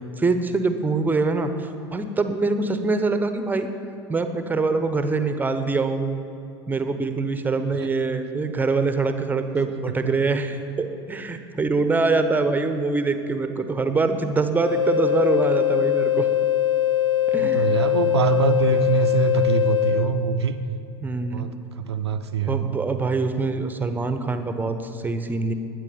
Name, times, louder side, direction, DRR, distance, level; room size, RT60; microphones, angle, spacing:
voice 1, 0.2-3.7 4.1-6.2 6.7-16.3 17.3-17.7 21.0-21.5 22.4-25.5, right 3 dB, 15° right, 8 dB, 1.0 m, -24 dB
sound 1, 14.6-19.9, left 11 dB, 80° left, 2.0 m, -21 dB
voice 2, 17.3-20.6 21.3-22.8, right 6 dB, 70° right, 10 dB, 0.7 m, -24 dB
20.5 x 9.2 x 5.2 m, 2.7 s
figure-of-eight pair, 80°, 14 cm